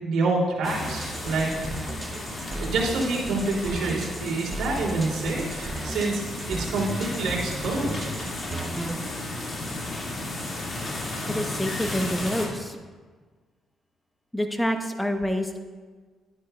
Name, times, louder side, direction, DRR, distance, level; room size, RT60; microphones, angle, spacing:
voice 1, 0.0-1.8 2.6-6.2 6.5-8.3, right 3 dB, 75° right, -4 dB, 2.7 m, -27 dB
sound 1, 0.6-12.5, left 2 dB, 35° left, 2.0 m, -34 dB
sound 2, 0.8-9.0, right 2 dB, 25° right, 0.6 m, -36 dB
voice 2, 11.3-12.8 14.3-15.6, equal, 5° left, 5 dB, 0.9 m, -27 dB
12.0 x 9.9 x 2.3 m, 1.4 s
cardioid pair, 90°, 0 cm